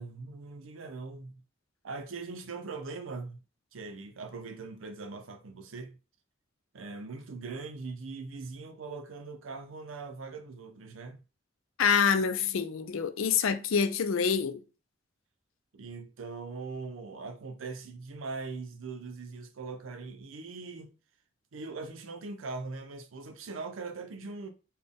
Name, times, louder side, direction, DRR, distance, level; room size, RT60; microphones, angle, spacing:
voice 1, 0.0-1.4 1.8-3.4 3.7-6.0 6.7-11.2 15.7-20.9 21.5-24.5, right 4 dB, 80° right, 0.6 m, -41 dB
voice 2, 11.8-14.6, left 6 dB, 90° left, 0.5 m, -26 dB
4.0 x 2.3 x 3.5 m
head